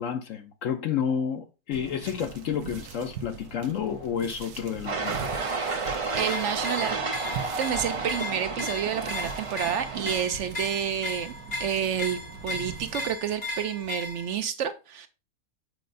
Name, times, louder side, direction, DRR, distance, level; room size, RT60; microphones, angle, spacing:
voice 1, 0.0-5.3, left 8 dB, 65° left, 0.9 m, -30 dB
sound 1, 1.7-13.1, right 6 dB, 85° right, 1.3 m, -42 dB
sound 2, 4.9-10.3, right 4 dB, 35° right, 0.5 m, -31 dB
sound 3, 6.1-14.4, left 2 dB, 40° left, 1.1 m, -37 dB
voice 2, 6.2-7.0 7.6-11.3 11.6-15.1, right 8 dB, 65° right, 0.8 m, -29 dB
7.7 x 5.1 x 2.5 m
omnidirectional pair, 1.6 m